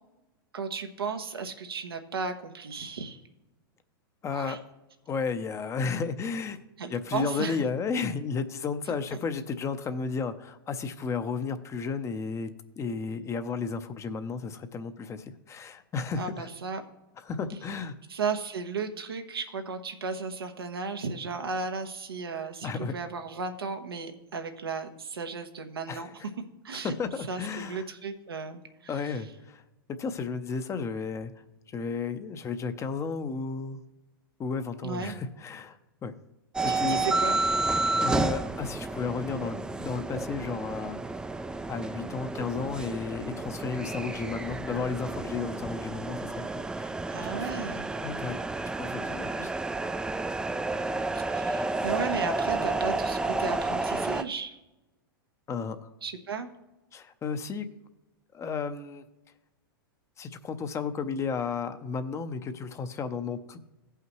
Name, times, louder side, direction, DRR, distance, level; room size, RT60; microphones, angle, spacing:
voice 1, 0.5-3.2 4.3-4.6 6.8-7.6 16.2-16.8 18.1-26.1 26.6-26.9 27.3-28.6 34.8-35.1 36.7-37.4 47.1-47.9 51.3-54.6 56.0-56.5, right 4 dB, 90° right, 5 dB, 1.1 m, -34 dB
voice 2, 4.2-4.6 5.1-6.6 6.9-12.5 12.8-16.5 17.2-18.0 22.6-22.9 25.9-26.3 26.7-27.9 28.9-29.6 30.0-31.3 31.7-33.8 34.4-36.1 36.6-37.0 38.0-41.0 41.7-46.4 46.8-47.0 47.4-47.6 48.0-48.3 48.7-49.5 49.8-50.0 55.5-55.9 56.9-57.7 58.3-59.0 60.2-63.6, left 5 dB, 25° left, 10 dB, 0.7 m, -33 dB
sound 1, 36.5-54.2, right 3 dB, 5° right, 0.4 m, -31 dB
16.0 x 5.7 x 3.1 m, 0.99 s
hypercardioid pair, 110°, 12 cm